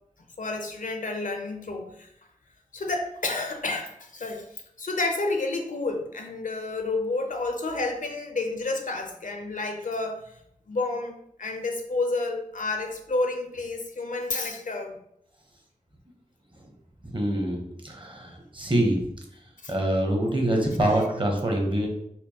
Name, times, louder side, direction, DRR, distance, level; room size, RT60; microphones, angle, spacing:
voice 1, 0.4-2.1 2.7-10.4 10.7-15.0 19.6-19.7, left 3 dB, 70° left, 4 dB, 0.6 m, -30 dB
voice 2, 17.0-19.0 19.7-21.9, right 1 dB, 35° right, 1 dB, 0.9 m, -25 dB
4.4 x 2.5 x 2.8 m, 0.74 s
wide cardioid pair, 60°, 14 cm